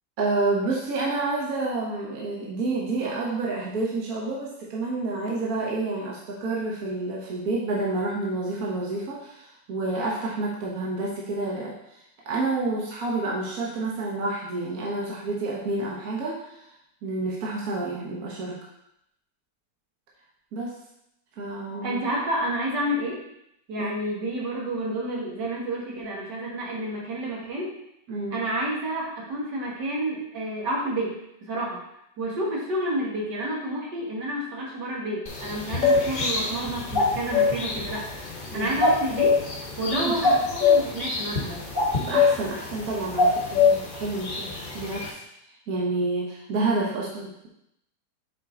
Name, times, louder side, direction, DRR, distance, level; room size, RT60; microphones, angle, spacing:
voice 1, 0.2-11.7 12.2-16.6 17.0-18.6 20.5-20.7 21.4-22.0 23.8-23.9 28.1-28.4 38.5-38.7 39.9-40.1 42.0-45.2 45.7-47.5, right 3 dB, 60° right, -3 dB, 1.5 m, -29 dB
voice 2, 21.8-23.2 23.7-27.7 28.3-31.1 31.4-31.8 32.2-39.4 39.8-41.6, right 1 dB, 75° right, -4 dB, 2.2 m, -30 dB
sound 1, 35.3-45.1, left 4 dB, 35° left, 1.0 m, -24 dB
7.4 x 4.4 x 3.7 m, 0.79 s
omnidirectional pair, 1.9 m